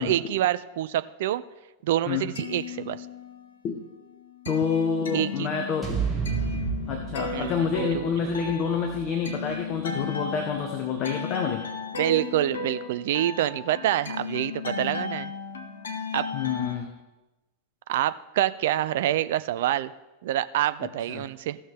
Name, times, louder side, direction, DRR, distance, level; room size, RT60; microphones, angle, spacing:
voice 1, 0.0-1.4 1.8-3.0 5.1-5.5 7.3-7.5 7.8-8.1 12.0-15.3 16.1-16.3 17.9-19.9 20.2-21.6, right 13 dB, 55° right, 14 dB, 0.4 m, -26 dB
sound 1, 2.3-3.6 3.9-16.7, left 5 dB, 65° left, 1.0 m, -35 dB
voice 2, 4.5-6.0 6.9-11.6 16.3-16.9 20.8-21.3, left 6 dB, 35° left, 3 dB, 1.2 m, -28 dB
sound 2, 5.8-10.0, right 6 dB, 10° right, 1.9 m, -32 dB
16.0 x 6.3 x 3.5 m, 1.1 s
figure-of-eight pair, 90°, 0 cm